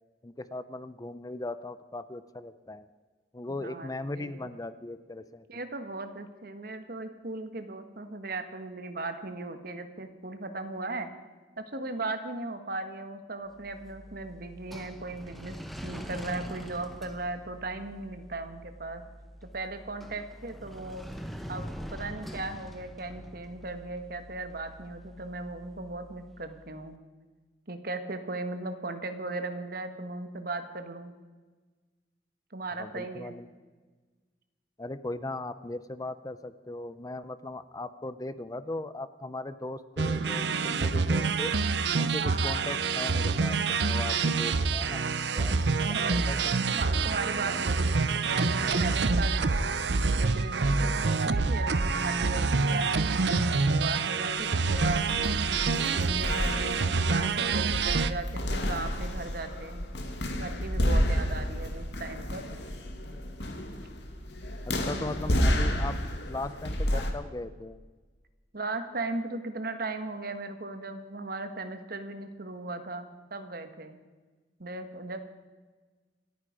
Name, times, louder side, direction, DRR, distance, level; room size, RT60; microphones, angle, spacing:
voice 1, 0.2-2.9 3.3-5.4 32.7-33.5 34.8-41.6 42.0-45.1 45.3-46.4 46.7-46.8 64.7-67.8, left 2 dB, 20° left, 13 dB, 0.5 m, -38 dB
voice 2, 3.5-4.3 5.5-11.1 11.6-15.6 15.8-19.0 19.4-21.0 21.5-27.0 27.7-31.1 32.5-33.3 42.2-42.7 45.8-46.3 46.7-49.6 50.2-55.0 55.5-59.8 60.4-62.4 68.5-74.0 74.6-75.2, right 2 dB, 55° right, 8 dB, 1.5 m, -37 dB
sound 1, 13.6-26.7, equal, ahead, 1.0 m, -44 dB
sound 2, 40.0-58.1, right 4 dB, 75° right, 0.7 m, -27 dB
sound 3, 54.7-67.1, equal, 75° left, 2.1 m, -31 dB
27.0 x 9.6 x 5.1 m, 1.4 s
head